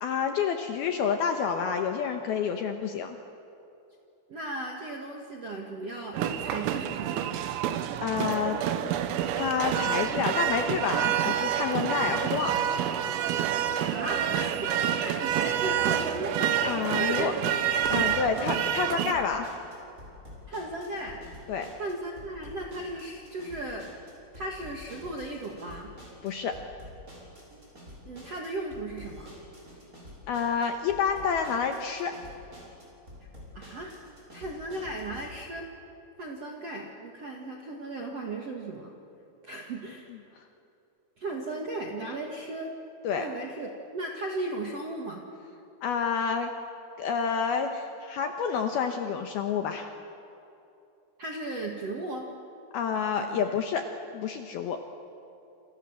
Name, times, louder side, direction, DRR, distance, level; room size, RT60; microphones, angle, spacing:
voice 1, 0.0-3.2 8.0-8.6 9.3-12.7 16.6-17.3 17.9-19.5 21.5-21.7 26.2-26.6 30.3-32.2 43.0-43.3 45.8-46.5 47.0-49.9 52.7-53.9 54.1-54.8, left 6 dB, 75° left, 5 dB, 2.4 m, -29 dB
voice 2, 4.3-7.4 13.8-16.6 17.0-17.4 18.3-18.5 20.5-21.2 21.8-23.9 24.3-25.9 28.0-29.3 33.2-33.3 33.5-33.9 34.3-35.7 36.2-38.9 39.4-40.1 41.2-42.7 43.2-45.2 51.2-52.3 53.2-53.4, right 2 dB, 60° right, 0 dB, 1.6 m, -36 dB
sound 1, 6.1-19.1, right 10 dB, 90° right, 3.8 m, -28 dB
sound 2, 17.8-35.3, left 1 dB, 15° right, 6.2 m, -48 dB
28.5 x 28.0 x 7.3 m, 2.8 s
omnidirectional pair, 5.7 m